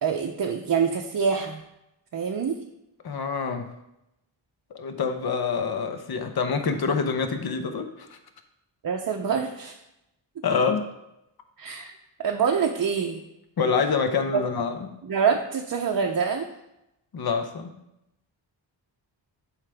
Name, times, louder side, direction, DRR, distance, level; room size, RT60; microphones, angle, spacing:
voice 1, 0.0-1.6 2.1-2.6 8.8-9.8 11.6-13.2 14.3-14.4 15.0-16.5, right 6 dB, 50° right, 1 dB, 0.6 m, -26 dB
voice 2, 3.0-3.7 4.7-8.2 10.4-10.9 13.6-14.9 17.1-17.8, left 5 dB, 50° left, 7 dB, 0.8 m, -26 dB
11.0 x 4.9 x 3.4 m, 0.87 s
wide cardioid pair, 175°, 47 cm